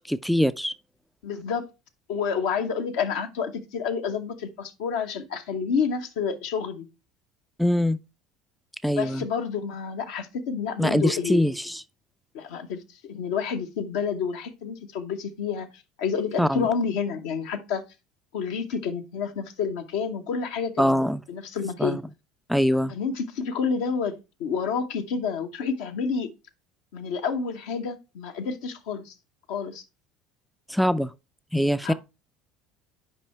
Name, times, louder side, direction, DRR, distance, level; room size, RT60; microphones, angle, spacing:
voice 1, 0.1-0.7 7.6-8.0 8.8-9.2 10.8-11.8 16.4-16.7 20.8-21.2 21.8-22.0 22.5-22.9 30.7-31.1 31.5-31.9, equal, ahead, 0.3 m, -23 dB
voice 2, 1.2-1.7 2.1-6.9 9.0-11.4 12.3-15.7 16.0-17.8 18.3-21.0 21.3-22.0 22.9-26.3 26.9-29.1 29.5-29.8 31.8-31.9, left 6 dB, 70° left, 0.9 m, -29 dB
5.7 x 4.9 x 4.3 m
hypercardioid pair, 70°, 0 cm